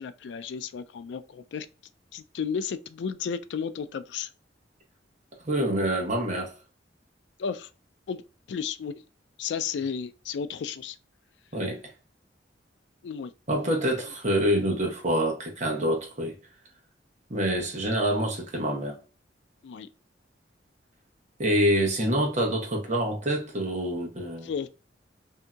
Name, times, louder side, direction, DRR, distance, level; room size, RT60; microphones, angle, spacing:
voice 1, 0.0-1.7 2.1-4.3 7.4-7.7 8.1-8.2 8.5-9.0 9.4-11.0 13.0-13.3 19.6-19.9 24.4-24.7, left 6 dB, 70° left, 0.3 m, -33 dB
voice 2, 5.4-6.5 11.5-11.8 13.5-16.3 17.3-19.0 21.4-24.5, equal, 40° right, 1.0 m, -26 dB
2.7 x 2.6 x 2.2 m
head